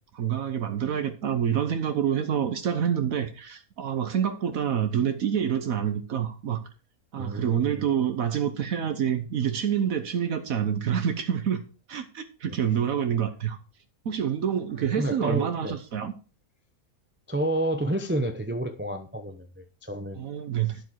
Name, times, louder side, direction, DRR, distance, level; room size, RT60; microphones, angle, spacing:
voice 1, 0.1-6.6 7.1-11.6 11.9-13.6 14.0-16.1 20.2-20.8, right 8 dB, 70° right, 1.3 m, -27 dB
voice 2, 7.2-7.8 14.9-15.7 17.3-20.2, right 1 dB, 10° right, 0.6 m, -30 dB
10.0 x 7.3 x 4.6 m
omnidirectional pair, 1.5 m